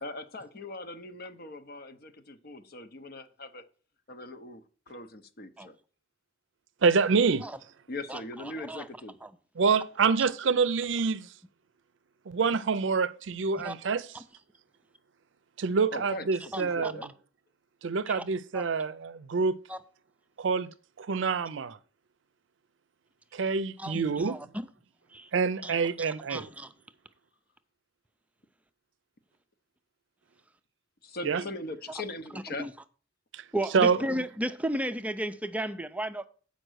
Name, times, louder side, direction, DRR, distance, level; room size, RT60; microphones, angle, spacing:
voice 1, 0.0-3.6 4.1-4.6 4.9-5.7 7.9-9.2 15.9-16.3 16.6-17.1 31.0-32.7 33.8-34.1, left 2 dB, 50° left, 0.8 m, -40 dB
voice 2, 6.8-7.4 9.6-11.3 12.3-14.1 15.6-17.0 17.8-19.6 20.4-20.7 21.0-21.8 23.3-24.4 25.3-26.5 31.2-31.4 33.3-33.4 33.7-34.0, right 5 dB, 65° right, 0.5 m, -26 dB
voice 3, 8.1-8.9 9.2-9.3 13.6-13.7 14.1-14.2 16.5-16.9 18.1-18.2 18.5-18.7 19.7-19.8 23.8-24.5 25.1-25.3 25.6-26.7 32.3-32.7 33.5-36.3, right 1 dB, 5° right, 0.4 m, -34 dB
7.8 x 5.3 x 6.3 m
head